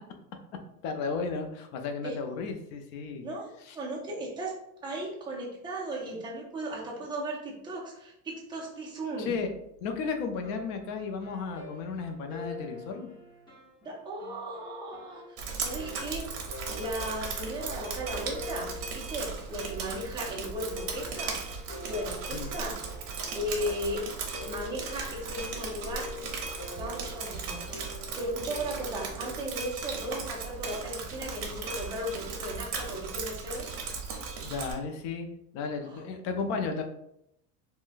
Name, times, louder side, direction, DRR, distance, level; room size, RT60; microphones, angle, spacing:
voice 1, 0.8-3.3 3.7-3.8 9.2-9.5 9.8-13.1 22.3-22.5 34.4-35.3 35.5-36.8, left 5 dB, 65° left, 5 dB, 0.6 m, -34 dB
voice 2, 3.2-4.6 4.8-9.3 13.8-15.2 15.5-16.4 16.8-21.4 21.9-22.8 23.3-24.1 24.4-26.1 26.7-27.7 28.2-33.7 35.8-36.0, right 1 dB, 15° right, -4 dB, 0.5 m, -36 dB
sound 1, 10.4-29.4, left 2 dB, 10° left, 1.0 m, -46 dB
Drip, 15.4-34.7, right 5 dB, 65° right, 0.8 m, -37 dB
3.7 x 2.1 x 2.5 m, 0.77 s
cardioid pair, 170°, 36 cm